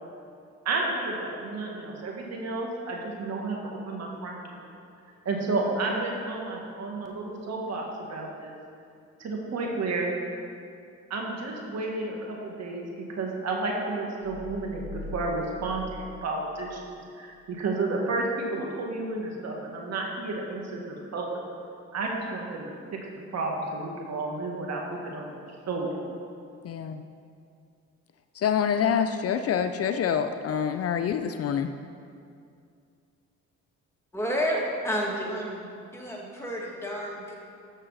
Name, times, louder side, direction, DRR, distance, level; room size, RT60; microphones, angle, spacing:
voice 1, 0.7-4.7 5.3-8.5 9.2-10.1 11.1-12.9 13.1-16.8 17.2-21.4 21.9-22.7 23.3-25.4 25.7-25.9, right 3 dB, 60° right, -1 dB, 1.9 m, -31 dB
sound 1, 14.2-16.9, left 1 dB, 10° right, 1.8 m, -42 dB
voice 2, 26.6-27.0 28.4-31.7, left 8 dB, 50° left, 8 dB, 0.5 m, -26 dB
voice 3, 34.1-35.7 35.9-37.3, equal, 10° left, -3 dB, 2.2 m, -30 dB
13.5 x 6.5 x 4.1 m, 2.4 s
cardioid pair, 90°, 30 cm